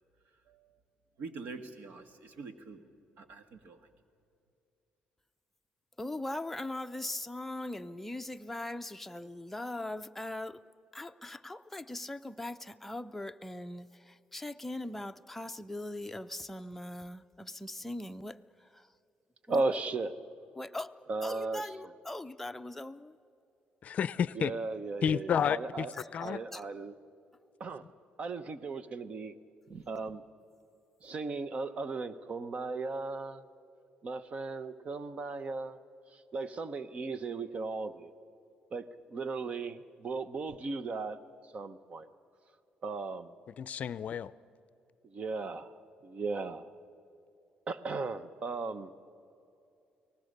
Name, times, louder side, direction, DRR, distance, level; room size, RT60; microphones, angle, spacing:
voice 1, 0.5-0.8 1.2-2.8 3.2-3.9, right 4 dB, 70° right, 8 dB, 1.8 m, -46 dB
voice 2, 6.0-10.6 10.9-18.9 19.5-19.8 20.2-20.3 20.6-23.2 25.9-26.7, left 1 dB, 5° left, 8 dB, 0.6 m, -40 dB
voice 3, 19.5-20.1 21.1-21.6 24.3-25.9 26.2-26.9 27.6-27.8 28.2-29.3 29.7-30.2 31.0-33.5 34.0-35.8 36.1-38.1 38.7-41.2 41.5-42.1 42.8-43.3 45.0-45.7 46.0-46.7 47.7-48.9, right 3 dB, 45° right, 13 dB, 1.0 m, -36 dB
voice 4, 23.8-24.5 25.0-25.9 26.1-26.4 43.5-44.3, left 8 dB, 50° left, 17 dB, 0.5 m, -31 dB
30.0 x 19.0 x 6.7 m, 2.7 s
cardioid pair, 105°, 3 cm